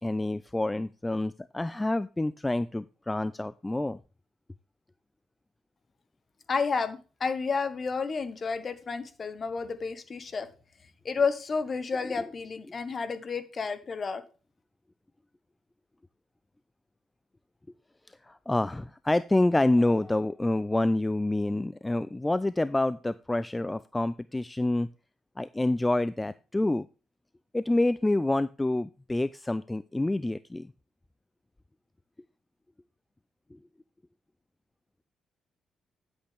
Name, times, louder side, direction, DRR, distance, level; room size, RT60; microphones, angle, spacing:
voice 1, 0.0-4.0 18.3-24.9 25.4-26.9 27.5-30.7, left 2 dB, 15° left, 15 dB, 0.3 m, -27 dB
voice 2, 6.5-10.5 11.0-14.2, left 5 dB, 40° left, 10 dB, 1.4 m, -31 dB
10.0 x 7.8 x 3.5 m, 0.34 s
cardioid pair, 90°, 0 cm